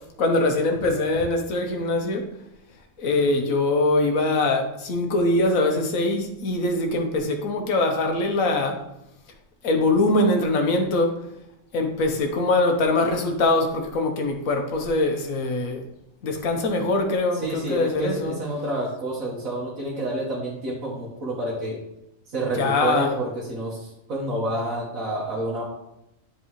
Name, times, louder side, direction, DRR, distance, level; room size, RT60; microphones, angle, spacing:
voice 1, 0.2-2.3 3.0-8.8 9.6-11.2 11.7-15.8 16.2-18.3 22.6-23.1, left 2 dB, 85° left, 3 dB, 1.5 m, -22 dB
voice 2, 17.3-21.8 22.3-25.7, right 1 dB, 90° right, -5 dB, 1.8 m, -29 dB
10.5 x 4.6 x 3.1 m, 0.85 s
omnidirectional pair, 1.4 m